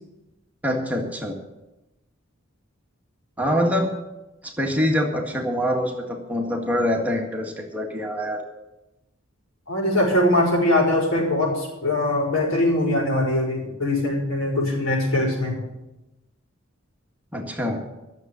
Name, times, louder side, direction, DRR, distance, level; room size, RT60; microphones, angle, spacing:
voice 1, 0.6-1.3 3.4-3.9 4.6-8.4 17.3-17.8, equal, 10° right, 0 dB, 1.8 m, -24 dB
voice 2, 9.7-15.6, left 1 dB, 80° left, -2 dB, 5.8 m, -22 dB
13.0 x 7.4 x 9.5 m, 0.98 s
head